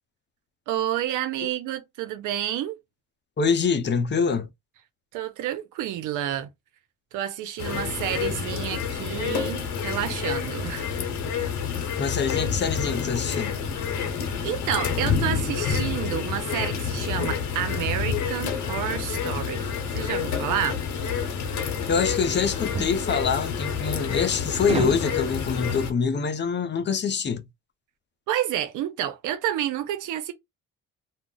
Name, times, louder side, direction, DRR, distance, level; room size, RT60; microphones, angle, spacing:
voice 1, 0.7-2.8 5.1-6.5 7.1-10.9 14.4-20.8 28.3-30.3, right 11 dB, 90° right, 0.6 m, -29 dB
voice 2, 3.4-4.5 12.0-13.6 21.9-27.5, left 5 dB, 35° left, 0.6 m, -25 dB
sound 1, 7.6-25.9, left 7 dB, 65° left, 0.8 m, -28 dB
sound 2, 22.7-23.0 24.6-25.1, right 5 dB, 20° right, 0.4 m, -29 dB
2.3 x 2.0 x 3.8 m
cardioid pair, 90°, 30 cm